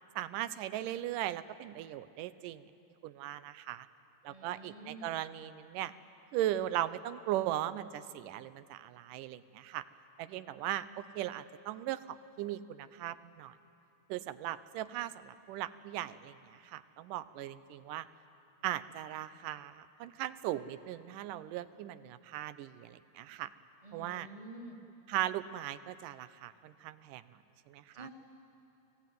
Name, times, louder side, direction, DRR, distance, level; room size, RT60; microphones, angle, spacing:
voice 1, 0.2-2.6 3.0-3.9 4.2-5.9 6.3-9.8 10.2-13.6 14.1-18.1 18.6-23.5 23.9-24.3 25.1-27.2 27.7-28.1, right 13 dB, 80° right, 14 dB, 2.2 m, -38 dB
voice 2, 4.3-5.1 23.8-24.8 27.9-28.1, right 2 dB, 10° right, 1 dB, 1.9 m, -49 dB
30.0 x 19.5 x 9.2 m, 2.9 s
omnidirectional pair, 3.9 m